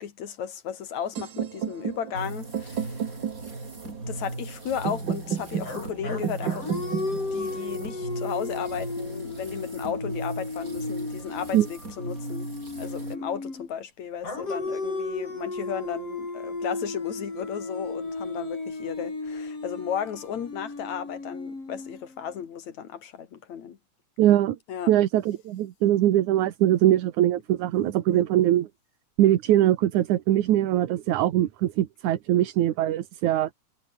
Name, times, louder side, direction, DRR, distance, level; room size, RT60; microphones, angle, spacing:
voice 1, 0.0-3.1 4.0-12.5 12.7-23.8 24.7-24.9 28.1-28.2, left 8 dB, 70° left, 3.5 m, -35 dB
sound 1, 1.1-9.1, right 8 dB, 50° right, 1.5 m, -34 dB
sound 2, 2.1-13.2, right 2 dB, 25° right, 7.5 m, -38 dB
sound 3, 5.6-13.7 14.2-22.3, left 3 dB, 50° left, 8.3 m, -34 dB
voice 2, 24.2-24.6 24.9-28.7 29.2-33.5, right 12 dB, 80° right, 2.7 m, -22 dB
omnidirectional pair, 3.4 m